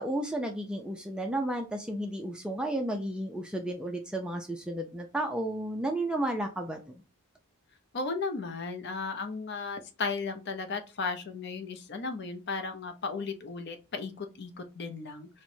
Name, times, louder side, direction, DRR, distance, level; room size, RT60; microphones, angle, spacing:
voice 1, 0.0-6.8, right 1 dB, 5° right, 3 dB, 0.3 m, -32 dB
voice 2, 7.9-15.3, left 4 dB, 50° left, 7 dB, 0.5 m, -35 dB
4.4 x 2.1 x 2.6 m, 0.30 s
head